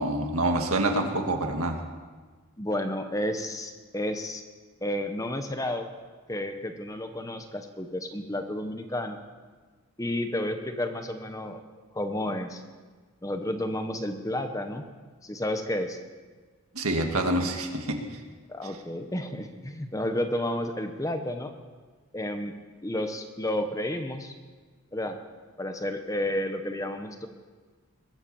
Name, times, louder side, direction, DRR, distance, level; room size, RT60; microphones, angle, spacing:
voice 1, 0.0-1.8 16.7-18.0, right 1 dB, 85° right, 4 dB, 1.9 m, -26 dB
voice 2, 2.6-4.4 4.8-5.9 6.3-9.2 10.0-11.6 11.9-12.6 13.2-14.9 15.2-16.0 18.5-21.5 22.1-22.5 22.8-24.3 24.9-25.2 25.6-27.3, left 1 dB, 15° left, 7 dB, 1.0 m, -31 dB
21.5 x 8.1 x 7.0 m, 1.4 s
head